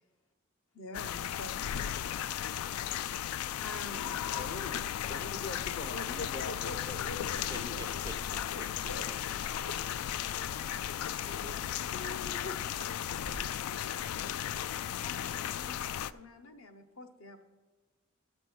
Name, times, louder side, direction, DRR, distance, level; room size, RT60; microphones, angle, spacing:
voice 1, 0.7-2.3 3.6-4.0 4.7-4.8 5.8-6.1 6.5-7.6 8.5-9.1 9.7-9.8 10.9-11.0 11.9-12.9 15.0-17.4, left 2 dB, 75° left, 6 dB, 0.9 m, -46 dB
sound 1, 0.9-16.1, left 10 dB, 90° left, 0.3 m, -35 dB
voice 2, 4.4-4.7 5.1-7.8, left 3 dB, 45° left, 10 dB, 0.6 m, -42 dB
sound 2, 7.2-8.8 9.2-10.0 12.2-15.1, right 2 dB, 80° right, 0.6 m, -51 dB
voice 3, 7.5-9.2 11.2-11.7, right 2 dB, 20° right, 9 dB, 0.4 m, -49 dB
13.5 x 4.5 x 7.6 m, 1.2 s
head